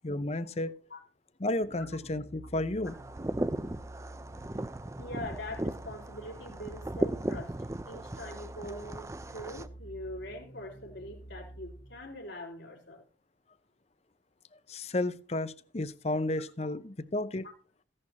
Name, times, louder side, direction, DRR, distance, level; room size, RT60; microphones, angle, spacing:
voice 1, 0.0-0.7 1.4-3.0 14.7-17.5, left 2 dB, 35° left, 15 dB, 0.6 m, -32 dB
sound 1, 1.6-12.3, right 1 dB, 55° left, 2.0 m, -49 dB
sound 2, 2.8-9.7, right 1 dB, 15° right, 0.4 m, -37 dB
voice 2, 5.0-7.6 7.9-13.0 16.6-16.7 17.4-17.5, left 1 dB, 75° left, 1 dB, 3.6 m, -43 dB
15.5 x 11.0 x 2.9 m, 0.37 s
head